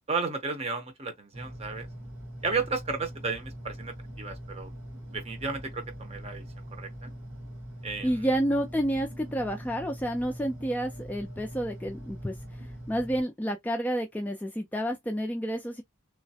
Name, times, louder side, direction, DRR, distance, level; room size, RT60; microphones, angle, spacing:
voice 1, 0.1-1.9 2.4-4.7 5.1-7.1 7.8-8.3, right 4 dB, 30° right, 0.6 m, -33 dB
sound 1, 1.3-13.2, equal, 80° right, 1.6 m, -42 dB
voice 2, 8.0-12.3 12.9-15.8, equal, 10° left, 0.3 m, -29 dB
3.1 x 2.0 x 2.7 m
head